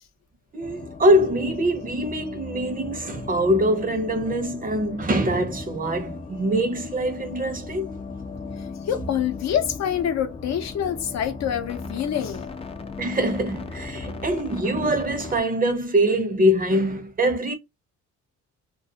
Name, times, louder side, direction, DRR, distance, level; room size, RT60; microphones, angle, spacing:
voice 1, 0.5-7.9 13.0-17.5, equal, 30° right, 0.6 m, -23 dB
sound 1, 0.6-15.4, left 4 dB, 20° left, 0.4 m, -37 dB
voice 2, 8.6-12.5, left 9 dB, 60° left, 0.6 m, -26 dB
2.3 x 2.3 x 2.7 m
cardioid pair, 90°, 30 cm